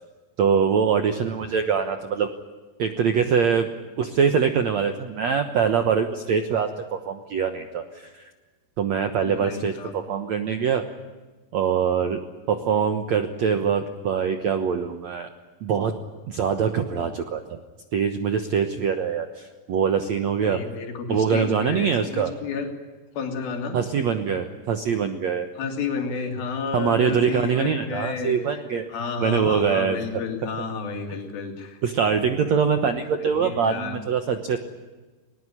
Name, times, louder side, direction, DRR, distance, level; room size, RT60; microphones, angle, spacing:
voice 1, 0.4-2.3 2.8-8.2 8.8-10.8 11.5-12.2 12.5-15.3 15.6-15.9 16.3-17.6 17.9-20.6 21.1-22.3 23.7-25.5 26.7-28.8 29.2-30.2 31.8-34.6, right 6 dB, 75° right, 7 dB, 1.5 m, -23 dB
voice 2, 9.2-9.9 20.4-22.7 23.2-23.8 25.6-28.5 28.9-31.8 32.1-32.3 33.2-34.0, left 5 dB, 60° left, 5 dB, 4.5 m, -31 dB
20.5 x 20.5 x 9.8 m, 1.3 s
omnidirectional pair, 5.0 m